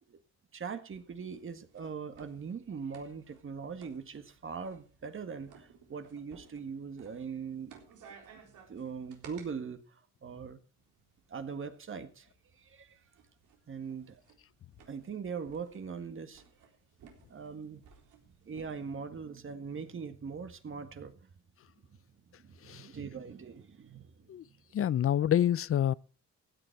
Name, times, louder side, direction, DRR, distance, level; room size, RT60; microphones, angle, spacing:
voice 1, 0.5-7.8 8.7-10.6 11.3-12.3 12.6-13.0 13.7-14.2 14.9-16.4 17.3-17.8 18.4-21.3 21.9-22.0 22.4-24.6, right 6 dB, 45° right, 1.8 m, -41 dB
sound 1, 0.9-9.5 10.8-19.0, right 6 dB, 80° right, 3.8 m, -59 dB
voice 2, 24.7-25.9, left 10 dB, 45° left, 0.6 m, -27 dB
16.0 x 10.0 x 4.7 m
cardioid pair, 90°, 30 cm